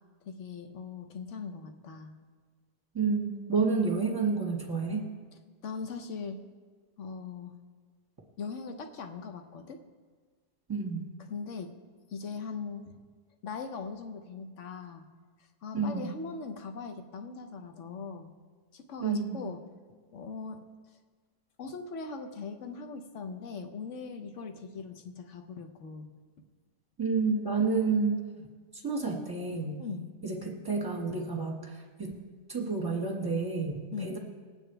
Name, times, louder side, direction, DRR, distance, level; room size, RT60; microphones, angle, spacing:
voice 1, 0.2-2.2 4.9-5.0 5.6-6.4 7.0-7.5 8.4-9.8 11.3-11.7 12.1-13.0 13.4-15.0 15.6-18.3 18.7-19.6 20.1-20.6 21.6-26.1 28.4-28.5 29.8-30.1 33.9-34.2, left 5 dB, 55° left, 6 dB, 1.1 m, -40 dB
voice 2, 2.9-5.0 10.7-11.0 15.7-16.0 19.0-19.4 27.0-28.2 28.7-29.8 30.2-32.1 32.5-34.2, right 4 dB, 15° right, -1 dB, 1.6 m, -30 dB
21.0 x 9.0 x 3.4 m, 1.5 s
omnidirectional pair, 1.7 m